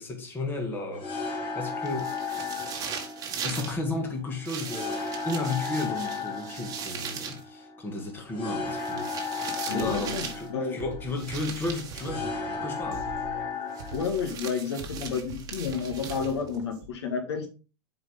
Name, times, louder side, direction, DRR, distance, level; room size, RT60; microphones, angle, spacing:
voice 1, 0.0-2.1 3.4-13.1, left 2 dB, 15° left, 1.8 m, -34 dB
sound 1, 0.9-14.0, left 5 dB, 40° left, 2.4 m, -35 dB
sound 2, 1.8-3.8 4.4-7.4 8.7-10.5 11.1-12.2 13.7-16.6, right 7 dB, 25° right, 1.5 m, -39 dB
voice 2, 9.7-10.8 13.9-17.5, left 6 dB, 80° left, 1.8 m, -31 dB
Drum kit, 9.7-16.9, right 3 dB, 50° right, 1.4 m, -43 dB
7.6 x 4.7 x 3.7 m
supercardioid pair, 140°, 14 cm